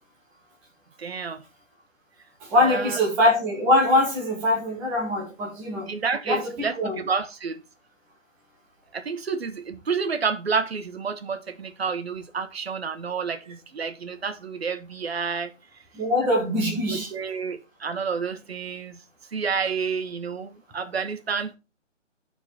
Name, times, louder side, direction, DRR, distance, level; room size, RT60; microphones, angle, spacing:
voice 1, 1.0-1.4 2.5-3.0 5.9-7.6 8.9-15.5 16.9-19.0 19.3-21.5, right 5 dB, 50° right, 1.0 m, -29 dB
voice 2, 2.5-5.9 6.3-7.0 15.9-17.1, left 1 dB, 5° right, 0.8 m, -22 dB
13.5 x 4.5 x 3.3 m
figure-of-eight pair, 155°, 38 cm